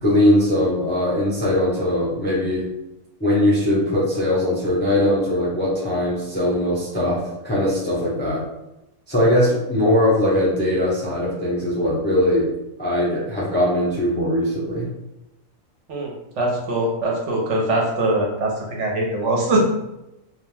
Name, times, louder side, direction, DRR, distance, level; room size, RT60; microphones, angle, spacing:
voice 1, 0.0-2.7 3.2-7.2 7.4-8.4 9.1-12.5 12.8-14.9, left 1 dB, 15° left, -7 dB, 0.4 m, -20 dB
voice 2, 16.4-19.6, right 1 dB, 70° right, -2 dB, 0.9 m, -22 dB
2.4 x 2.1 x 3.1 m, 0.91 s
omnidirectional pair, 1.4 m